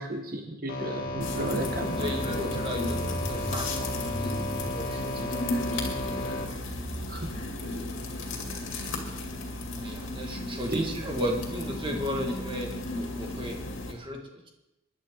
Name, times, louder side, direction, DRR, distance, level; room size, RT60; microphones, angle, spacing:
voice 1, 0.0-2.1 7.1-7.3 10.7-10.8, right 1 dB, 50° right, 3 dB, 1.0 m, -33 dB
sound 1, 0.7-6.5, left 1 dB, 50° left, 2.0 m, -34 dB
sound 2, 1.0-7.9, equal, 5° left, 1.2 m, -39 dB
sound 3, 1.2-13.9, left 2 dB, 90° left, 2.4 m, -34 dB
voice 2, 2.0-4.3 4.6-5.8 9.8-13.6 13.9-14.2, equal, 25° right, 1 dB, 1.6 m, -35 dB
20.0 x 10.5 x 3.7 m, 0.95 s
head